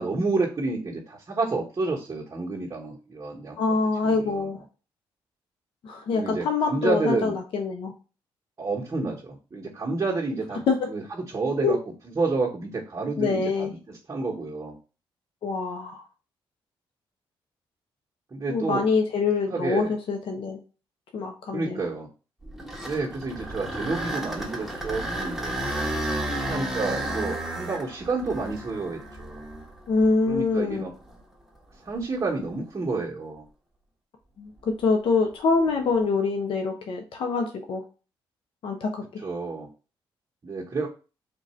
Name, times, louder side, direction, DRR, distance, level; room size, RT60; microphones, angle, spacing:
voice 1, 0.0-3.8 4.0-4.5 6.1-7.3 8.6-10.6 10.9-11.0 11.3-11.8 12.2-14.8 18.3-18.9 19.5-19.9 21.5-22.1 22.8-25.5 26.4-29.5 30.3-30.9 31.8-33.5 39.2-39.7 40.4-40.9, right 3 dB, 35° right, -5 dB, 1.0 m, -29 dB
voice 2, 3.6-4.6 5.8-7.9 10.7-10.9 11.6-11.8 13.2-13.7 15.4-16.0 18.5-20.6 21.1-21.8 29.9-30.9 34.4-37.8 38.6-39.2, left 4 dB, 65° left, 3 dB, 0.7 m, -25 dB
sound 1, 22.4-30.5 31.1-31.2 31.9-32.0 35.6-35.9, right 1 dB, ahead, 1.0 m, -32 dB
3.7 x 2.5 x 4.3 m, 0.34 s
cardioid pair, 85°, 10 cm